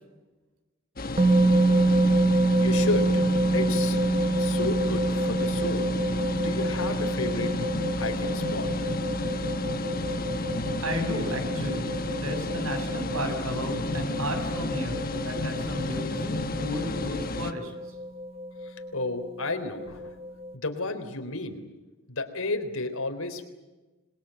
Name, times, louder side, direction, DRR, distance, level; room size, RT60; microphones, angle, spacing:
sound 1, 1.0-17.5, left 2 dB, 40° left, 1.3 m, -32 dB
sound 2, 1.2-20.5, right 1 dB, 30° right, 1.0 m, -27 dB
voice 1, 2.6-3.3 3.5-4.1 4.4-5.9 6.4-7.6 8.0-8.7 18.6-20.1 20.5-21.6 22.1-23.4, left 2 dB, 80° left, 7 dB, 3.7 m, -32 dB
voice 2, 10.8-11.9 12.2-17.7, equal, 90° right, 6 dB, 7.4 m, -33 dB
27.0 x 21.5 x 9.0 m, 1.2 s
head